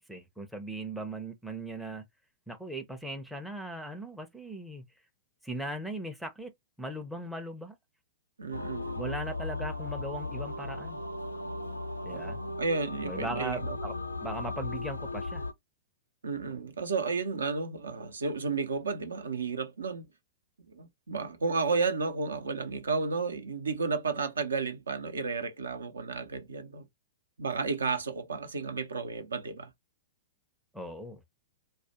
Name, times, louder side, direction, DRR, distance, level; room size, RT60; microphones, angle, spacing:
voice 1, 0.0-2.0 2.5-4.8 5.4-6.5 6.8-7.8 9.0-11.0 12.0-12.4 13.0-15.4 30.7-31.2, right 1 dB, ahead, 0.5 m, -39 dB
voice 2, 8.4-9.1 12.1-13.8 16.2-20.0 20.7-26.8 27.4-29.7, right 4 dB, 70° right, 0.5 m, -32 dB
sound 1, 8.5-15.5, left 2 dB, 85° left, 0.4 m, -36 dB
2.3 x 2.1 x 2.8 m
figure-of-eight pair, 105°, 0 cm